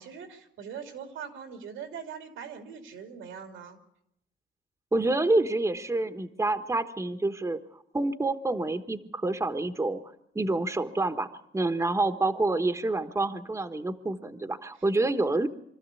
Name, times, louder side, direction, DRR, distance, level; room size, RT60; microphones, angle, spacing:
voice 1, 0.0-3.8, right 7 dB, 90° right, 5 dB, 2.8 m, -41 dB
voice 2, 4.9-7.6 7.9-10.0 10.3-15.5, right 2 dB, 15° right, 8 dB, 1.2 m, -27 dB
25.0 x 13.5 x 8.4 m, 0.79 s
cardioid pair, 90°, 20 cm